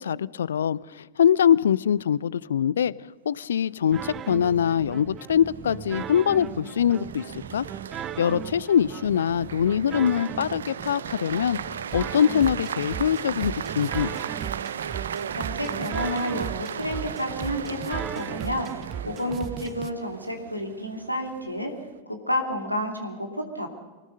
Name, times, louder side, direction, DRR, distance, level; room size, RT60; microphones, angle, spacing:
voice 1, 0.0-2.9 3.3-7.6 7.9-14.2, left 8 dB, 65° left, 22 dB, 0.5 m, -23 dB
sound 1, 3.7-22.0, right 8 dB, 65° right, 0.7 m, -37 dB
sound 2, 3.9-19.9, right 10 dB, 30° right, 0.6 m, -37 dB
voice 2, 15.3-18.7 19.1-21.7 22.3-23.7, left 1 dB, 90° left, 4 dB, 2.7 m, -30 dB
24.5 x 19.0 x 5.5 m, 1.3 s
figure-of-eight pair, 90°, 0 cm